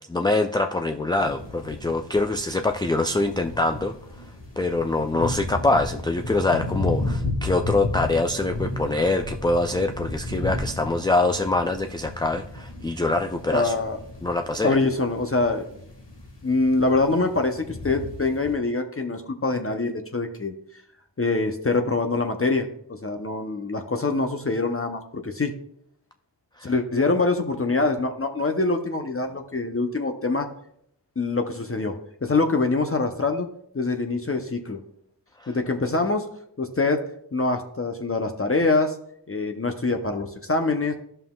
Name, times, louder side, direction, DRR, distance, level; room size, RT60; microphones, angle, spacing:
voice 1, 0.1-3.9 4.6-13.7 14.2-14.8 26.6-26.7, left 2 dB, 10° left, 6 dB, 0.3 m, -24 dB
sound 1, 1.1-18.5, left 2 dB, 80° left, 1.8 m, -34 dB
voice 2, 13.5-14.0 14.6-15.7 16.4-20.5 21.2-25.5 26.6-30.5 31.2-33.5 33.7-34.8 35.5-36.3 36.6-37.0 37.3-39.0 39.3-40.9, left 3 dB, 30° left, 5 dB, 0.7 m, -24 dB
12.5 x 5.6 x 2.3 m, 0.71 s
wide cardioid pair, 55°, 42 cm